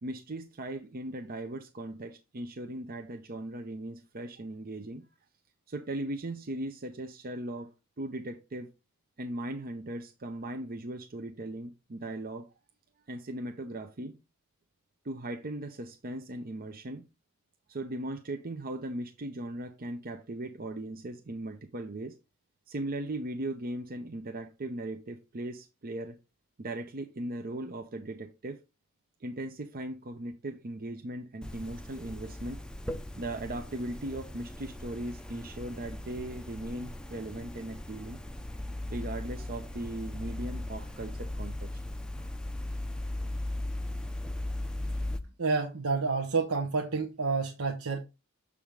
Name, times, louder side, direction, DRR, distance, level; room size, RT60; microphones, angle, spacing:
voice 1, 0.0-5.0 5.7-7.7 8.0-8.7 9.2-12.5 13.1-14.1 15.0-17.0 17.7-22.2 22.7-26.2 26.6-28.6 29.2-32.6 33.2-38.2 38.9-41.7, right 1 dB, 40° right, 0.7 m, -38 dB
sound 1, 31.4-45.2, left 1 dB, 5° left, 0.5 m, -38 dB
voice 2, 45.4-48.0, right 4 dB, 75° right, 1.0 m, -29 dB
7.1 x 4.9 x 3.6 m
head